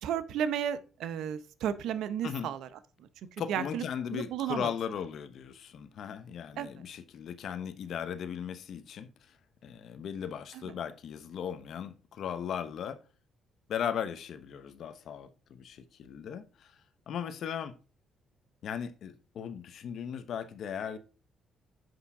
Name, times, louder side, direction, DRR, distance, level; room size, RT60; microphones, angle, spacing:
voice 1, 0.0-2.7 3.0-3.1 3.5-3.8 4.1-4.7 6.6-6.7 10.5-10.7, right 9 dB, 80° right, 0.7 m, -33 dB
voice 2, 3.4-9.1 9.6-13.0 13.7-16.8 17.1-17.7 18.6-21.0, left 8 dB, 65° left, 0.9 m, -37 dB
7.9 x 5.6 x 3.6 m
cardioid pair, 95°, 0 cm